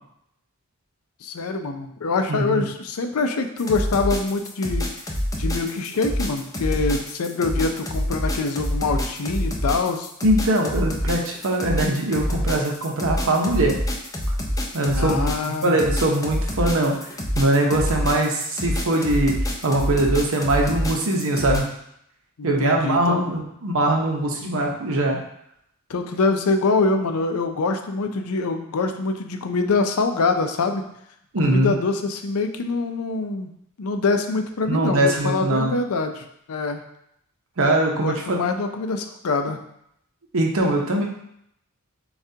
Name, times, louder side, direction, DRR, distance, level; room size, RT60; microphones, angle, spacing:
voice 1, 1.2-4.9 5.4-10.1 14.9-15.8 22.4-23.3 25.9-30.9 31.4-33.5 33.8-36.8 38.0-39.6, left 3 dB, 70° left, 6 dB, 0.5 m, -24 dB
voice 2, 2.3-2.6 10.2-13.7 14.7-17.1 17.3-19.3 19.6-21.7 22.4-25.2 31.3-31.8 34.7-35.7 37.6-38.4 40.3-41.0, right 1 dB, 65° right, 0 dB, 0.8 m, -21 dB
sound 1, 3.6-21.6, equal, 15° left, 0.5 m, -26 dB
7.0 x 2.4 x 2.8 m, 0.75 s
head